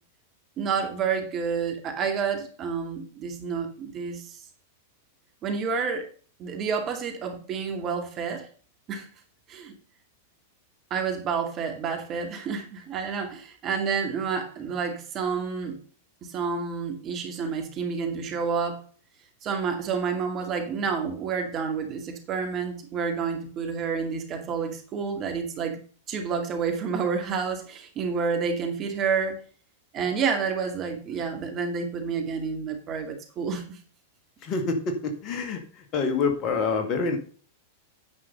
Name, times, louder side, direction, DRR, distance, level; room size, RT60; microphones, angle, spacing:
voice 1, 0.6-4.4 5.4-6.1 6.4-8.5 8.9-9.1 9.5-9.7 10.9-15.8 16.2-18.8 19.4-25.8 26.1-29.4 29.9-33.8, right 5 dB, 35° right, 4 dB, 2.3 m, -29 dB
voice 2, 34.4-35.6 35.9-37.2, left 4 dB, 40° left, 6 dB, 1.9 m, -26 dB
9.4 x 5.6 x 5.3 m, 0.41 s
figure-of-eight pair, 95°, 0 cm